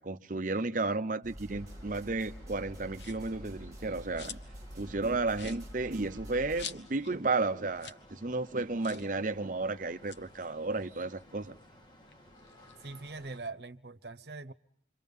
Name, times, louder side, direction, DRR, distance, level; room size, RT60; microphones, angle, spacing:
voice 1, 0.0-4.4 4.7-11.5, right 3 dB, 50° right, 0.9 m, -33 dB
sound 1, 1.2-6.7, equal, 20° right, 2.4 m, -47 dB
sound 2, 1.5-13.4, left 1 dB, 25° left, 2.6 m, -57 dB
sound 3, 2.9-3.4 3.8-4.6 4.9-5.0 5.3-7.2 7.5-7.6 7.8-8.1 8.3-8.4 8.8-9.1 9.9-11.6 12.0-13.5, left 7 dB, 90° left, 1.2 m, -48 dB
voice 2, 12.8-14.5, right 3 dB, 70° right, 1.1 m, -42 dB
28.0 x 24.5 x 5.5 m
head